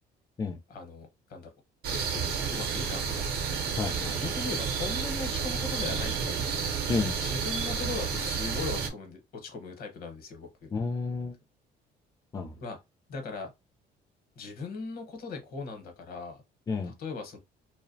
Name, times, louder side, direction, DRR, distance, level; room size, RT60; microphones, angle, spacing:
voice 1, 0.7-1.5 1.9-3.3 4.2-10.7 12.6-12.8 13.1-13.5 14.4-16.4 16.8-17.4, left 4 dB, 60° left, 0.9 m, -39 dB
sound 1, 1.8-8.9, right 6 dB, 70° right, 0.6 m, -31 dB
voice 2, 3.8-4.2 6.9-7.2 10.7-11.4 12.3-12.5 16.7-16.9, left 4 dB, 20° left, 0.4 m, -31 dB
2.5 x 2.1 x 2.6 m
cardioid pair, 110°, 17 cm